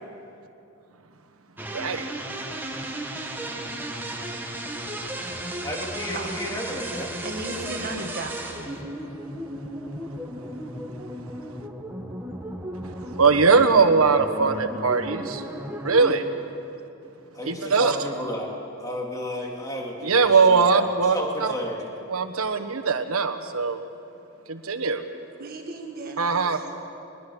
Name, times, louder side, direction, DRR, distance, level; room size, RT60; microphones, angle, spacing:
sound 1, 1.6-16.2, right 1 dB, 10° right, 1.3 m, -34 dB
voice 1, 1.7-2.1 13.2-15.4 15.8-16.2 17.5-17.9 20.0-21.1 21.4-21.5 22.1-23.8 24.5-25.0 26.2-26.6, right 4 dB, 80° right, 8 dB, 1.4 m, -20 dB
voice 2, 5.6-7.2 17.3-21.9, left 1 dB, 15° left, -1 dB, 2.7 m, -33 dB
voice 3, 7.2-8.8 25.4-26.6, right 2 dB, 45° right, 2 dB, 1.8 m, -35 dB
22.0 x 21.0 x 6.4 m, 2.8 s
head